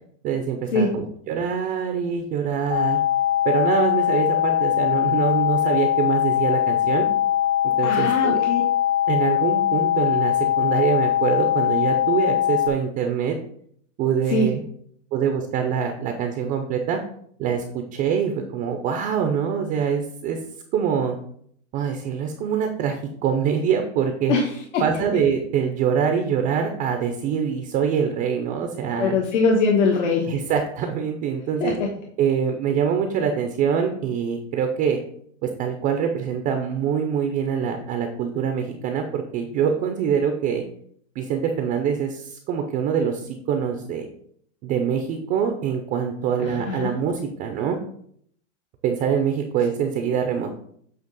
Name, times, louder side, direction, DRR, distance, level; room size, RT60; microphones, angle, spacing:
voice 1, 0.2-3.0 3.4-7.1 7.8-8.4 9.1-13.4 14.0-14.6 15.1-17.0 17.4-20.4 20.7-21.2 21.7-24.3 24.8-29.2 30.3-31.8 32.2-35.0 35.6-40.6 41.2-44.1 44.6-47.8 48.8-50.5, right 7 dB, 25° right, 5 dB, 0.4 m, -24 dB
sound 1, 2.7-12.7, left 11 dB, 35° left, 0.4 m, -21 dB
voice 2, 7.8-8.6 14.3-14.5 24.3-25.1 29.0-30.4 31.6-31.9 46.4-46.9, left 3 dB, 75° left, 0 dB, 1.3 m, -22 dB
8.2 x 2.9 x 5.2 m, 0.64 s
supercardioid pair, 155°, 36 cm